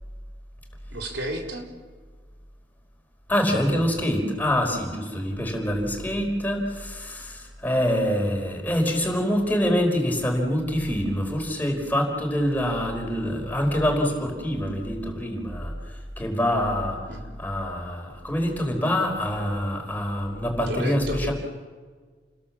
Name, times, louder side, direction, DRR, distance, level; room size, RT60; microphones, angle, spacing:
voice 1, 0.9-1.7 17.1-17.2 20.7-21.3, right 1 dB, 80° right, 1 dB, 4.3 m, -32 dB
voice 2, 3.3-15.7 16.2-17.0 17.4-21.3, equal, 10° left, 1 dB, 4.9 m, -25 dB
30.0 x 21.5 x 7.4 m, 1.5 s
head